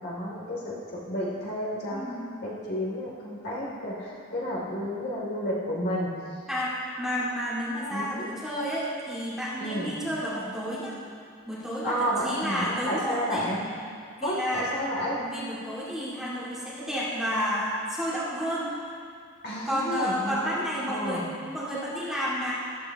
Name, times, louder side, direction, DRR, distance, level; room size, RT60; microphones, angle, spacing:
voice 1, 0.0-2.0 2.4-6.1 7.9-8.3 9.6-9.9 11.8-13.6 14.2-15.2 19.4-20.5 20.9-21.3, equal, 50° left, -5 dB, 2.9 m, -31 dB
voice 2, 1.9-2.3 6.5-10.9 11.4-13.5 14.2-14.7 15.2-18.7 19.6-22.5, equal, ahead, -9 dB, 2.2 m, -31 dB
14.0 x 13.0 x 3.0 m, 2.2 s
head